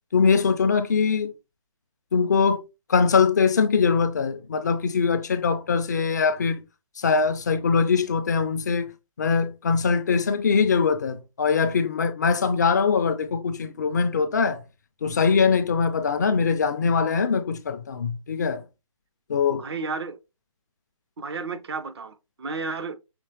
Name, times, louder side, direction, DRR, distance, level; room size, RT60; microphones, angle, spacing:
voice 1, 0.1-1.3 2.1-2.6 2.9-6.6 7.0-8.9 9.2-14.6 15.0-18.6 19.3-19.6, left 5 dB, 30° left, 0.3 m, -22 dB
voice 2, 19.6-20.2 21.2-23.0, right 4 dB, 50° right, 0.5 m, -32 dB
5.8 x 2.9 x 2.8 m
figure-of-eight pair, 140°, 17 cm